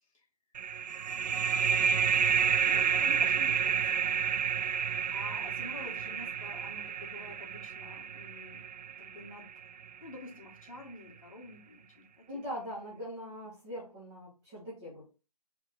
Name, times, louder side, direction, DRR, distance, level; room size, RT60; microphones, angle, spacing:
sound 1, 0.6-9.8, right 7 dB, 85° right, 0.4 m, -30 dB
voice 1, 1.2-4.2 5.1-9.5 10.0-12.4, left 2 dB, 55° left, 0 dB, 1.6 m, -49 dB
voice 2, 12.3-15.0, equal, 10° right, -8 dB, 1.3 m, -41 dB
4.8 x 2.8 x 3.6 m, 0.32 s
hypercardioid pair, 175°, 21 cm